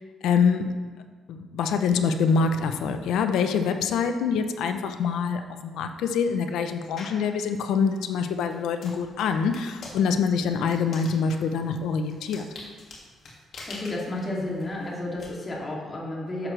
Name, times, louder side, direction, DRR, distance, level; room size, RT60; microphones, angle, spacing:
voice 1, 0.2-0.7 1.3-12.5, left 5 dB, 85° left, 7 dB, 0.7 m, -25 dB
sound 1, 7.0-7.3 7.9-15.3, left 3 dB, 60° left, 2.3 m, -45 dB
voice 2, 13.7-16.5, left 1 dB, 30° left, -4 dB, 2.8 m, -32 dB
11.0 x 7.6 x 3.4 m, 1.4 s
cardioid pair, 90°, 0 cm